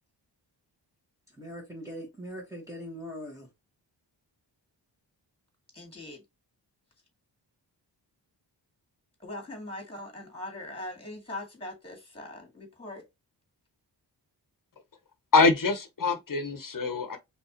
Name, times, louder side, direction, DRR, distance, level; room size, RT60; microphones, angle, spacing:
voice 1, 1.4-3.5, equal, 5° right, 1.5 m, -41 dB
voice 2, 5.7-6.2 9.2-13.0, left 1 dB, 15° left, 2.2 m, -41 dB
voice 3, 15.3-17.2, left 4 dB, 50° left, 0.9 m, -24 dB
5.2 x 3.4 x 2.9 m
wide cardioid pair, 125°, 43 cm